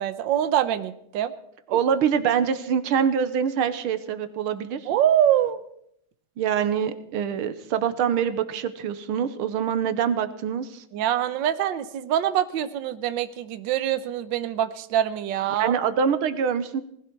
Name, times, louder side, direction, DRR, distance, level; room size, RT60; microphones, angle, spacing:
voice 1, 0.0-1.3 4.9-5.6 10.9-15.8, right 10 dB, 65° right, 11 dB, 1.5 m, -24 dB
voice 2, 1.7-4.8 6.4-10.8 15.6-16.8, right 7 dB, 90° right, 11 dB, 1.9 m, -25 dB
19.5 x 15.5 x 4.6 m, 0.73 s
omnidirectional pair, 2.3 m